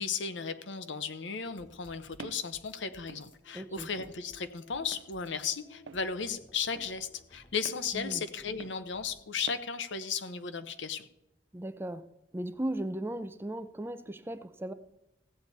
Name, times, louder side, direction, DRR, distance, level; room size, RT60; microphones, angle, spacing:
voice 1, 0.0-11.1, left 6 dB, 75° left, 0.8 m, -35 dB
sound 1, 1.4-9.4, left 2 dB, 30° left, 1.2 m, -59 dB
Walk footsteps, 2.2-2.5 3.1-3.3 4.0-4.2 4.9-5.1 5.9-6.1 6.7-6.9 7.6-7.9 8.6-8.8 9.5-9.7, right 5 dB, 80° right, 0.4 m, -47 dB
voice 2, 3.5-3.9 7.9-8.2 11.5-12.0 12.3-14.7, right 1 dB, 15° right, 0.4 m, -36 dB
16.0 x 8.5 x 4.1 m
head